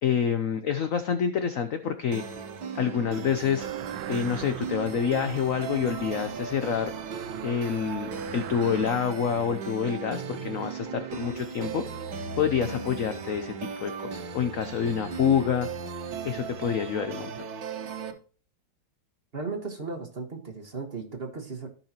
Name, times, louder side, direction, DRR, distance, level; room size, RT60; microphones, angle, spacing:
voice 1, 0.0-2.2 2.7-3.7 4.1-6.9 7.4-11.8 12.4-15.7 16.2-17.3, left 7 dB, 75° left, 9 dB, 0.7 m, -27 dB
sound 1, 2.1-18.1, right 6 dB, 65° right, 1.7 m, -37 dB
sound 2, 3.6-9.1, right 10 dB, 85° right, 1.5 m, -42 dB
voice 2, 19.3-21.7, right 4 dB, 35° right, 4 dB, 1.4 m, -36 dB
15.0 x 5.7 x 2.8 m, 0.39 s
omnidirectional pair, 2.2 m